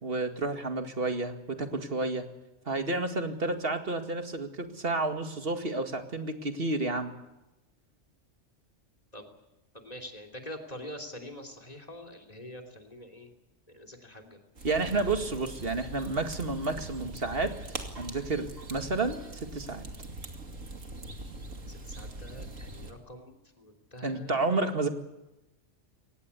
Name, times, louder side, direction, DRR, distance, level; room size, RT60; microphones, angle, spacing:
voice 1, 0.0-2.3 2.7-7.1 14.6-17.5 18.0-19.8 24.0-24.9, right 3 dB, 50° right, 6 dB, 2.4 m, -30 dB
voice 2, 9.7-13.3 13.7-14.4 21.7-24.3, left 1 dB, 30° left, 3 dB, 3.3 m, -45 dB
sound 1, 14.6-22.9, right 2 dB, 85° right, 2.8 m, -42 dB
24.0 x 18.5 x 8.4 m, 0.98 s
omnidirectional pair, 1.3 m